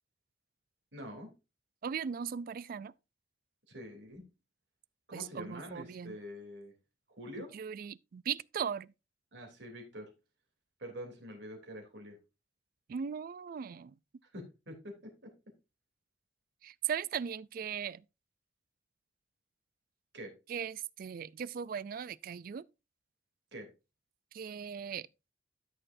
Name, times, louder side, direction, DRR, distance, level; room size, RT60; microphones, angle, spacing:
voice 1, 0.9-1.3 3.7-4.2 5.1-6.7 7.1-7.5 9.3-10.1 10.8-12.2 14.3-15.1 20.1-20.3 23.5-23.7, equal, 75° right, 3.0 m, -45 dB
voice 2, 1.8-2.9 5.1-6.2 7.4-8.9 12.9-14.0 16.6-18.0 20.5-22.7 24.3-25.1, right 7 dB, 50° right, 0.3 m, -38 dB
12.5 x 6.6 x 2.6 m
head